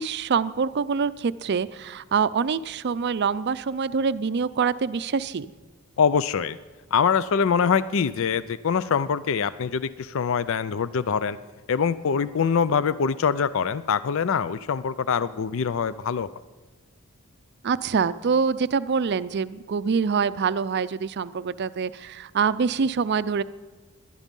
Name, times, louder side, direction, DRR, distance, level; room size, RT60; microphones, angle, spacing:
voice 1, 0.0-5.5 17.6-23.4, right 5 dB, 50° right, 16 dB, 0.4 m, -25 dB
voice 2, 6.0-6.6 6.9-11.4 11.7-16.3, left 6 dB, 65° left, 16 dB, 0.4 m, -24 dB
18.0 x 11.5 x 5.4 m, 1.3 s
head